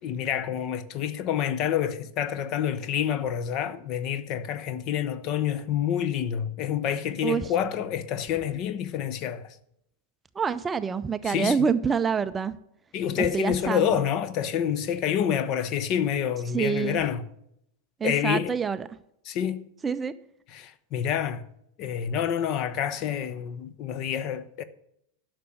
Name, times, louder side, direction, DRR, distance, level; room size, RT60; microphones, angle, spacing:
voice 1, 0.0-9.6 11.3-11.6 12.9-17.3 18.0-18.5 19.3-19.6 20.5-21.4 21.8-24.6, left 9 dB, 40° left, 0.7 m, -28 dB
voice 2, 10.3-12.6 13.2-14.0 16.5-17.0 18.0-18.9 19.8-20.1, right 6 dB, 15° right, 0.4 m, -26 dB
11.0 x 6.0 x 6.5 m
figure-of-eight pair, 90°, 0 cm